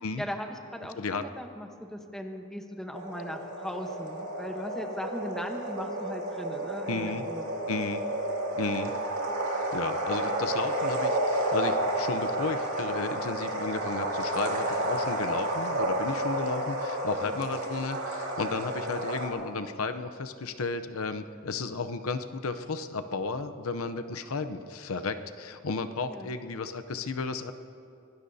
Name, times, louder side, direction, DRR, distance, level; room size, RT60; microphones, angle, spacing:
voice 1, 0.2-7.6 26.1-26.3, equal, ahead, 4 dB, 1.0 m, -38 dB
sound 1, 2.9-19.3, right 1 dB, 65° right, 2.4 m, -31 dB
voice 2, 6.9-7.2 7.7-8.0 8.6-8.9 9.7-27.5, left 4 dB, 75° left, 9 dB, 0.7 m, -33 dB
24.0 x 19.5 x 2.8 m, 2.6 s
head